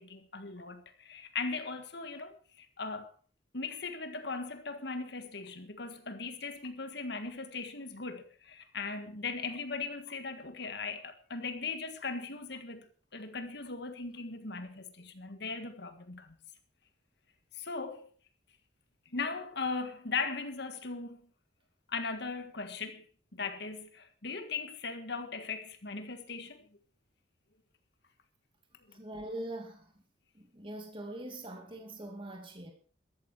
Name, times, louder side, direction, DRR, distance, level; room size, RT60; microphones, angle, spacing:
voice 1, 0.0-3.1 3.5-16.4 17.5-18.1 19.0-21.2 21.9-23.0 23.3-26.7 28.9-29.0, left 4 dB, 65° left, 1.7 m, -39 dB
voice 2, 28.9-29.9 30.3-32.7, right 1 dB, 30° right, 2.7 m, -42 dB
14.0 x 13.5 x 4.8 m
head